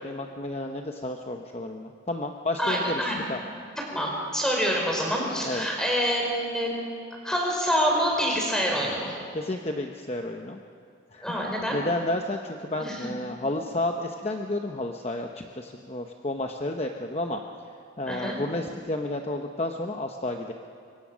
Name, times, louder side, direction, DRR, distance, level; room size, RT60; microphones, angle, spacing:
voice 1, 0.0-3.0 3.3-3.4 5.4-5.7 9.3-10.6 11.1-17.4 18.0-20.5, left 1 dB, 30° left, 3 dB, 0.9 m, -31 dB
voice 2, 2.6-3.2 3.9-6.7 7.2-9.1 11.2-11.8 12.8-13.1 18.1-18.4, equal, 5° left, -1 dB, 4.7 m, -26 dB
24.5 x 23.5 x 6.3 m, 2.5 s
head